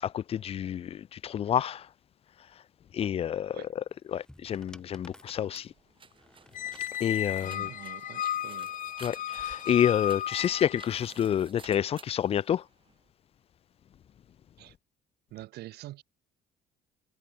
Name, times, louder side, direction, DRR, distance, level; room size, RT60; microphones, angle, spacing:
voice 1, 0.0-1.9 2.9-5.7 7.0-7.7 9.0-12.6, left 9 dB, 35° left, 0.4 m, -29 dB
sound 1, 3.9-7.6 8.6-9.0, left 1 dB, 5° left, 3.6 m, -56 dB
sound 2, 5.2-13.1, right 6 dB, 30° right, 2.0 m, -54 dB
Squeak, 6.5-11.0, left 11 dB, 50° left, 0.9 m, -34 dB
voice 2, 7.4-8.7 14.6-14.7 15.3-16.0, right 16 dB, 75° right, 1.1 m, -45 dB
cardioid pair, 110°, 17 cm